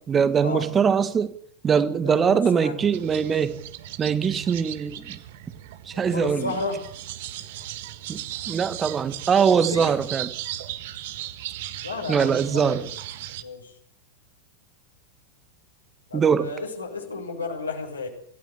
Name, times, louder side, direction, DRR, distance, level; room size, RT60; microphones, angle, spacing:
voice 1, 0.0-1.4 1.6-3.6 4.0-5.2 5.9-6.5 8.1-10.3 12.1-12.9 16.1-16.5, right 6 dB, 20° right, 1.8 m, -22 dB
voice 2, 2.0-2.9 5.9-6.8 9.5-9.9 11.8-12.9 13.4-13.7 16.1-18.1, left 3 dB, 80° left, 6.7 m, -33 dB
sound 1, 2.9-13.4, right 13 dB, 55° right, 1.7 m, -37 dB
26.5 x 16.5 x 8.4 m
figure-of-eight pair, 90°, 0 cm